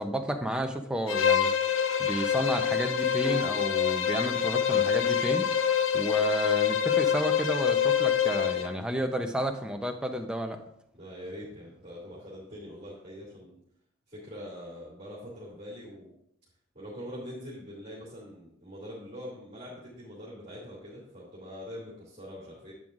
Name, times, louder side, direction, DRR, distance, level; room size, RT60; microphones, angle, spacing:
voice 1, 0.0-1.5 2.0-5.5 5.9-10.6, equal, 5° right, 4 dB, 0.6 m, -31 dB
Bowed string instrument, 1.1-8.7, left 8 dB, 80° left, 0.5 m, -26 dB
sound 1, 3.2-7.3, left 1 dB, 20° left, 0.9 m, -49 dB
voice 2, 10.9-13.6 14.1-16.1 16.7-22.7, equal, 30° right, -7 dB, 2.5 m, -43 dB
11.0 x 7.8 x 2.5 m, 0.72 s
head